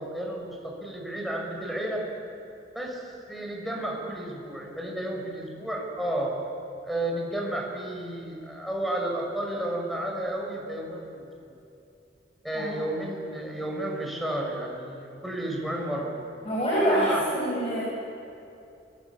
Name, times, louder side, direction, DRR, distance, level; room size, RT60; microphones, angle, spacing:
voice 1, 0.0-2.1 2.7-6.3 6.8-11.6 12.4-16.2 16.7-17.3, right 1 dB, ahead, 0 dB, 6.0 m, -32 dB
voice 2, 16.5-17.8, equal, 30° left, -7 dB, 7.4 m, -25 dB
29.5 x 23.0 x 8.7 m, 2.7 s
head